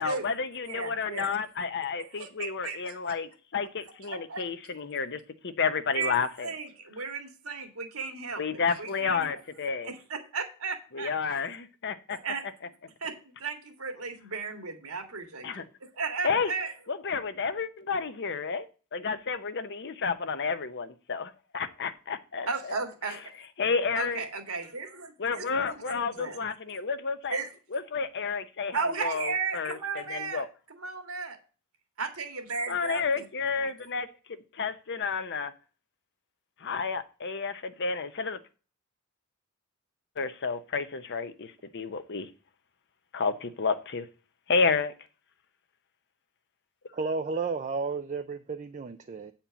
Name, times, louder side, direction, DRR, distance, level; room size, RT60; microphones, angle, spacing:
voice 1, 0.0-6.5 8.4-9.9 10.9-12.2 15.4-15.6 16.2-16.5 16.9-18.7 18.9-22.8 23.0-23.2 23.6-24.2 25.2-27.4 27.7-30.5 32.7-34.1 34.5-35.5 36.6-38.4 40.2-42.3 43.1-44.1 44.5-44.9, left 5 dB, 50° left, 11 dB, 0.8 m, -31 dB
voice 2, 0.6-1.3 2.1-3.0 4.1-4.4 5.9-6.1 6.4-9.4 9.8-11.4 12.1-12.4 13.0-15.5 16.0-16.7 22.5-23.2 24.0-26.4 27.3-27.5 28.7-30.4 30.7-31.4 32.0-33.2 33.6-33.7, right 4 dB, 70° right, 6 dB, 1.9 m, -35 dB
voice 3, 46.9-49.3, right 4 dB, 35° right, 8 dB, 0.4 m, -32 dB
8.8 x 4.4 x 6.9 m, 0.36 s
head